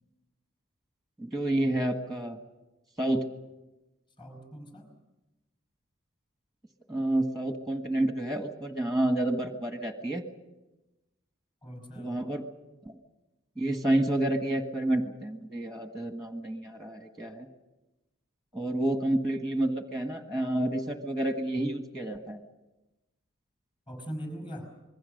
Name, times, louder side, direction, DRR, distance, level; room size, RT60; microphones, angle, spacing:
voice 1, 1.2-2.4 3.0-3.3 6.9-10.2 12.0-12.4 12.8-12.9 13.6-17.5 18.5-22.4, right 1 dB, ahead, 5 dB, 1.5 m, -29 dB
voice 2, 4.2-4.9 11.6-12.4 23.9-24.7, equal, 25° left, 6 dB, 5.0 m, -41 dB
26.0 x 21.5 x 6.5 m, 1.0 s
head